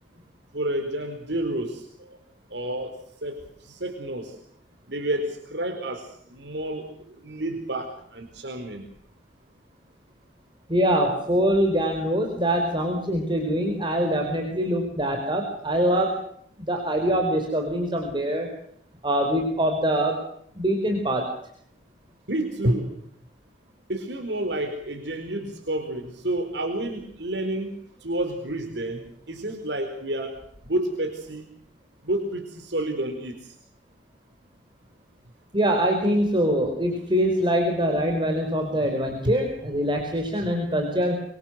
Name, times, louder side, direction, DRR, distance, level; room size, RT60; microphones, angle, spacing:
voice 1, 0.5-2.2 2.5-4.4 4.9-8.8 22.3-22.9 23.9-30.3 30.6-31.5 32.0-33.6 39.2-39.3, right 1 dB, 70° right, 5 dB, 4.4 m, -30 dB
voice 2, 10.7-16.2 16.6-18.5 19.0-20.2 20.5-21.3 35.5-41.2, equal, 25° right, 3 dB, 4.8 m, -24 dB
26.0 x 25.0 x 6.5 m, 0.66 s
head